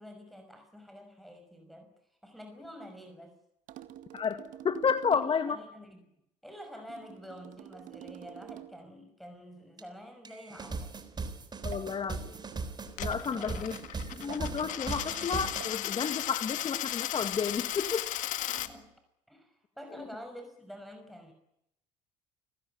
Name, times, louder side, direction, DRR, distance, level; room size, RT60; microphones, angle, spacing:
voice 1, 0.0-1.9 2.2-3.4 5.3-6.0 6.4-11.0 13.3-13.6 18.5-18.9 19.3-21.3, equal, ahead, 5.8 m, -48 dB
sound 1, 3.7-5.5 6.9-8.9 10.7-15.9 17.2-17.6 18.6-18.9, right 12 dB, 60° right, 1.9 m, -50 dB
voice 2, 4.1-5.6 11.6-12.4 13.0-13.7 14.1-18.1 18.5-18.6 20.0-20.1, left 6 dB, 35° left, 2.0 m, -31 dB
sound 2, 9.8-9.9 10.3-15.6, right 4 dB, 30° right, 3.7 m, -39 dB
Coin (dropping), 12.9-18.7, left 13 dB, 60° left, 1.8 m, -35 dB
29.0 x 17.5 x 8.9 m
hypercardioid pair, 60°, 15 cm